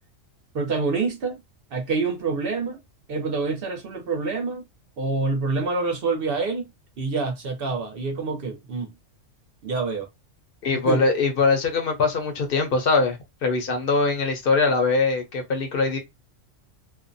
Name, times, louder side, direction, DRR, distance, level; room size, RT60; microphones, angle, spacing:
voice 1, 0.5-1.4 1.7-2.8 3.1-4.6 5.0-6.7 7.0-8.9 9.6-10.1 10.7-11.0, right 4 dB, 55° right, 0.8 m, -26 dB
voice 2, 10.6-16.0, left 4 dB, 55° left, 0.7 m, -22 dB
2.5 x 2.1 x 2.5 m
omnidirectional pair, 1.3 m